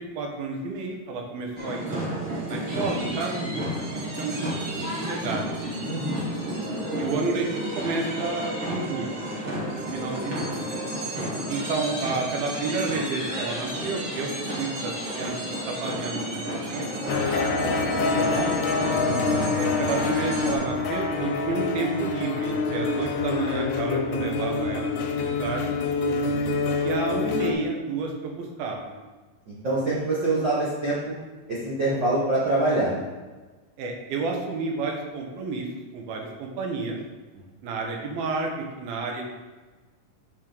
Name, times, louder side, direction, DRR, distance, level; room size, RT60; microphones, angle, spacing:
voice 1, 0.0-5.7 7.0-9.1 9.7-10.5 11.5-14.3 14.6-15.3 15.6-17.1 17.9-18.7 19.5-25.7 26.8-29.0 33.8-35.7 35.9-37.0 37.6-38.5 38.8-39.2, right 3 dB, 85° right, 1 dB, 3.0 m, -31 dB
sound 1, 1.6-20.6, right 1 dB, 40° right, 2.2 m, -31 dB
voice 2, 5.8-6.7 19.1-19.4 26.0-26.5 29.5-31.1 31.5-33.1 37.3-37.4, right 2 dB, 70° right, -8 dB, 1.0 m, -26 dB
sound 2, 17.1-27.5, left 4 dB, 70° left, 2.0 m, -26 dB
7.5 x 6.4 x 3.9 m, 1.3 s
omnidirectional pair, 4.2 m